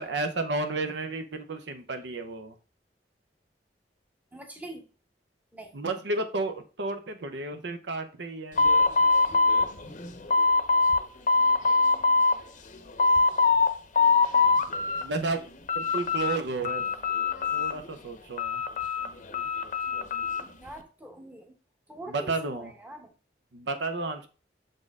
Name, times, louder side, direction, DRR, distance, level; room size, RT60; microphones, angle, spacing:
voice 1, 0.0-2.6 5.7-8.6 15.0-15.4 15.7-16.9 17.5-18.6 22.1-22.7 23.5-24.3, right 3 dB, 75° right, 7 dB, 0.7 m, -32 dB
voice 2, 4.3-4.8 5.5-5.7 20.6-21.5 21.9-23.1, right 1 dB, 10° right, 3 dB, 1.0 m, -43 dB
sound 1, 8.6-11.0 11.3-12.4 12.7-13.7 14.0-15.0 15.4-16.4 16.6-17.9 18.4-20.5, left 4 dB, 45° left, 0.7 m, -23 dB
6.5 x 4.2 x 3.6 m, 0.35 s
head